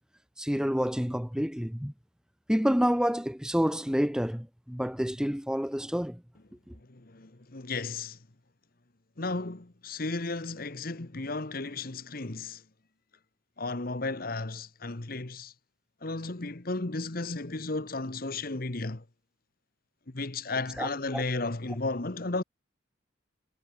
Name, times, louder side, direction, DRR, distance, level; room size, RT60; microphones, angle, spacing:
voice 1, 0.4-1.9 2.5-6.2 6.7-6.8 20.8-21.2, equal, 5° right, 1.0 m, -28 dB
voice 2, 6.9-8.2 9.2-12.6 13.6-15.5 16.0-19.0 20.1-22.4, left 3 dB, 45° left, 1.2 m, -34 dB
head